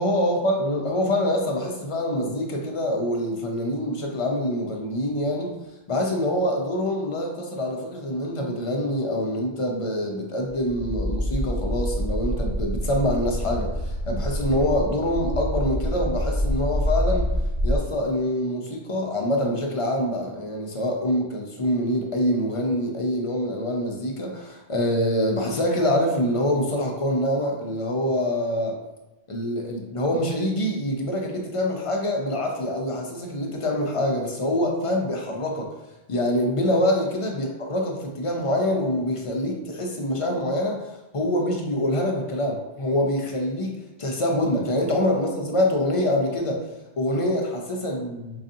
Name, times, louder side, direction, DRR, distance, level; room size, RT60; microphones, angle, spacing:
voice 1, 0.0-5.6 5.9-17.3 17.6-28.8 29.3-35.7 36.1-46.7 47.0-48.4, left 1 dB, 40° left, 0 dB, 0.5 m, -25 dB
sound 1, 10.7-17.8, equal, 75° right, 1.4 m, -26 dB
4.7 x 2.6 x 2.6 m, 1.0 s
omnidirectional pair, 1.0 m